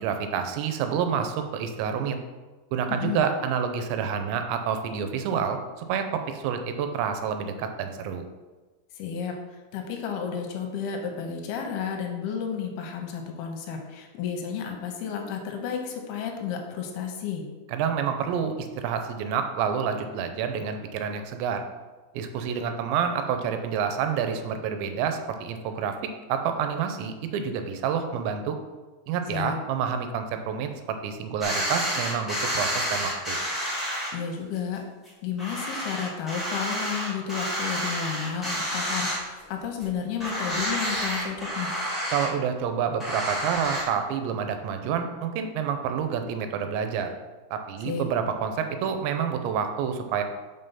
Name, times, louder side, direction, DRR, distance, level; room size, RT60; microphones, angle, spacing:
voice 1, 0.0-2.2 2.7-8.2 17.7-21.6 22.1-26.0 26.3-28.6 29.1-33.4 42.1-47.1 47.5-50.2, right 7 dB, 90° right, 7 dB, 2.9 m, -28 dB
voice 2, 8.9-9.3 9.7-17.4 29.3-29.6 34.1-34.8 35.2-41.7 47.9-48.1, left 7 dB, 75° left, 3 dB, 2.5 m, -32 dB
sound 1, 31.4-34.1 34.5-34.6 35.0-35.1 35.4-39.5 39.8-39.9 40.2-42.2 43.0-43.8, equal, ahead, 0.5 m, -29 dB
5.8 x 5.5 x 5.5 m, 1.3 s
omnidirectional pair, 5.1 m